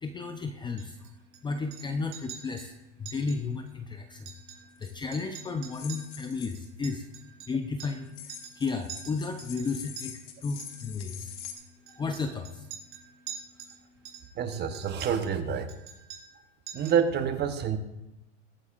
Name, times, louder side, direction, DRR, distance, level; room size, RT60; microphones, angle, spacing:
voice 1, 0.0-7.1 7.4-11.5 11.8-12.7, left 4 dB, 15° left, 6 dB, 0.6 m, -34 dB
Chink clink, 0.8-1.4 1.7-1.9 2.1-2.7 3.1-3.4 3.7-3.8 4.1-4.9 5.1-8.0 8.3-8.6 8.9-10.1 10.6-10.9 11.6-13.8 14.0-15.4 15.7-16.4 16.7-17.1, right 8 dB, 80° right, 4.2 m, -45 dB
sound 1, 4.8-4.9 5.7-6.7 8.1-11.5, left 10 dB, 75° left, 1.7 m, -44 dB
voice 2, 14.3-15.8 16.7-17.8, right 7 dB, 30° right, 9 dB, 1.0 m, -27 dB
21.5 x 8.4 x 2.5 m, 0.93 s
supercardioid pair, 130°, 35 cm